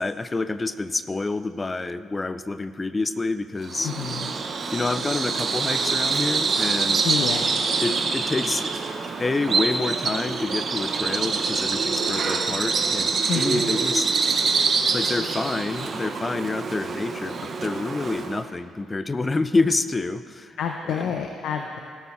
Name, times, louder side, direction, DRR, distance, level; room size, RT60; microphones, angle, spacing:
voice 1, 0.0-3.9 4.7-7.0 7.8-8.7 9.2-14.1 14.9-20.6 20.8-21.2, left 3 dB, 25° left, 13 dB, 0.4 m, -28 dB
Bird vocalization bird call bird song, 3.6-18.4, right 4 dB, 50° right, 0.9 m, -25 dB
voice 2, 3.8-4.3 7.0-7.6 13.3-13.8 20.6-21.8, left 7 dB, 80° left, 3 dB, 0.7 m, -29 dB
18.0 x 8.4 x 3.2 m, 2.2 s
cardioid pair, 90°, 0 cm